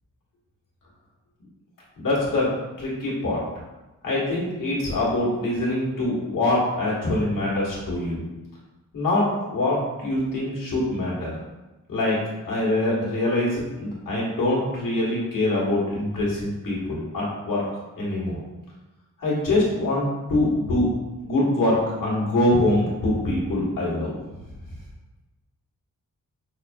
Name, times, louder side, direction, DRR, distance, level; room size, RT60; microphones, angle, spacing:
voice 1, 2.0-2.5 2.8-3.4 4.0-8.2 8.9-11.3 11.9-12.2 12.4-17.6 18.0-18.4 19.2-21.0 21.2-24.1, left 1 dB, 80° left, -6 dB, 1.5 m, -24 dB
5.8 x 2.7 x 2.3 m, 1.1 s
wide cardioid pair, 145°, 32 cm